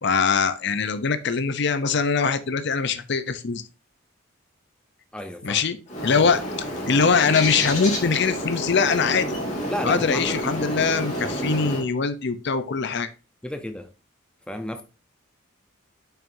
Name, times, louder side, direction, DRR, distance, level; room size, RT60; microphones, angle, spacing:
voice 1, 0.0-3.6 5.4-5.8 6.0-6.4 6.9-9.3 9.8-13.1, left 5 dB, 55° left, 0.6 m, -22 dB
voice 2, 5.1-5.6 9.7-10.5 13.4-13.9 14.5-14.8, left 1 dB, 5° left, 0.6 m, -32 dB
Bird, 5.9-11.8, equal, 35° left, 2.1 m, -29 dB
7.2 x 5.8 x 2.6 m
head